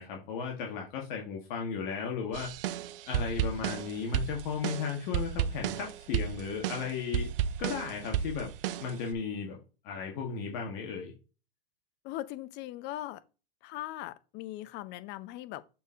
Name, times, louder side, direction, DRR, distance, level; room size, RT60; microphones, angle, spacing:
voice 1, 0.0-2.8 3.1-7.3 7.6-8.5 8.8-9.6 9.8-11.1, left 6 dB, 50° left, 1.7 m, -35 dB
sound 1, 2.3-9.1, right 9 dB, 65° right, 0.6 m, -33 dB
voice 2, 12.0-13.2 13.6-15.6, left 15 dB, 35° left, 0.7 m, -39 dB
6.7 x 4.4 x 3.8 m
hypercardioid pair, 105°, 30 cm